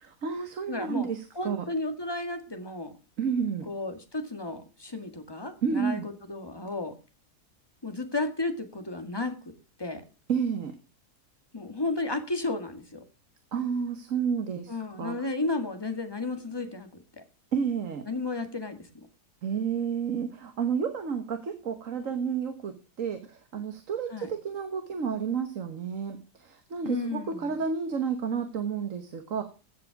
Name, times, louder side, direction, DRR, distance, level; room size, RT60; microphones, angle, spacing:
voice 1, 0.0-1.7 3.2-3.7 5.6-6.1 10.3-10.8 13.5-15.3 17.5-18.0 19.4-29.4, right 6 dB, 55° right, 8 dB, 1.6 m, -31 dB
voice 2, 0.7-1.1 1.4-2.9 3.7-6.9 7.8-9.4 9.8-10.0 11.5-13.0 14.7-16.9 18.1-18.9 24.1-24.3 26.8-27.5, left 2 dB, 15° left, 7 dB, 1.8 m, -33 dB
16.0 x 7.7 x 5.9 m, 0.33 s
omnidirectional pair, 1.7 m